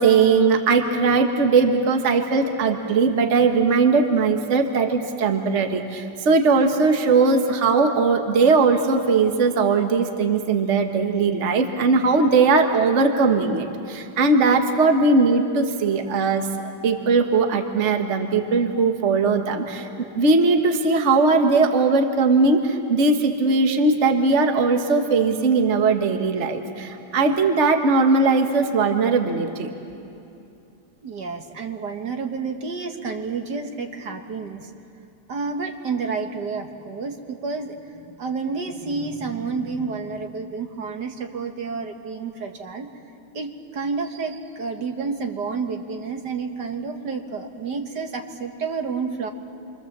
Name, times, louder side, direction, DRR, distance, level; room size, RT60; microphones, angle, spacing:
voice 1, 0.0-16.5 16.8-19.9 20.1-29.7, right 4 dB, 45° right, 5 dB, 1.5 m, -19 dB
voice 2, 31.0-34.7 35.3-42.9 43.3-49.3, right 4 dB, 70° right, 4 dB, 2.1 m, -30 dB
27.0 x 24.5 x 7.4 m, 2.7 s
omnidirectional pair, 1.9 m